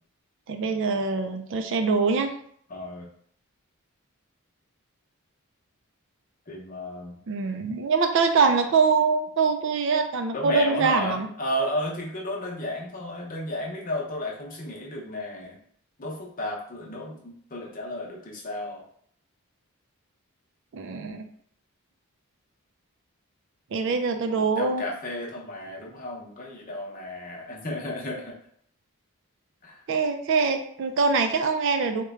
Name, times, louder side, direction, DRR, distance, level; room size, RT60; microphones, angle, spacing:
voice 1, 0.5-2.3 7.3-11.3 20.7-21.3 23.7-24.8 29.9-32.0, right 4 dB, 60° right, 6 dB, 0.4 m, -24 dB
voice 2, 2.7-3.1 6.5-7.1 10.3-15.6 16.0-18.8 23.8-24.0 24.3-28.3 29.6-29.8, left 1 dB, 40° left, -2 dB, 0.7 m, -33 dB
3.1 x 2.2 x 3.5 m, 0.63 s
head